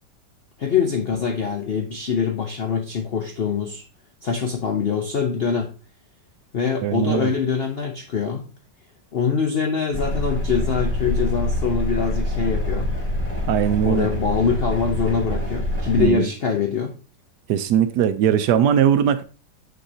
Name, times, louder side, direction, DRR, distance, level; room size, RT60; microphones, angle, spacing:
voice 1, 0.6-3.8 4.2-5.7 6.5-8.4 9.1-12.9 13.8-17.0, left 6 dB, 75° left, 0.5 m, -24 dB
voice 2, 6.8-7.3 13.4-14.1 16.0-16.3 17.5-19.2, right 9 dB, 75° right, 1.1 m, -19 dB
sound 1, 9.9-16.1, left 1 dB, 5° left, 1.6 m, -25 dB
6.5 x 6.5 x 2.7 m
omnidirectional pair, 2.0 m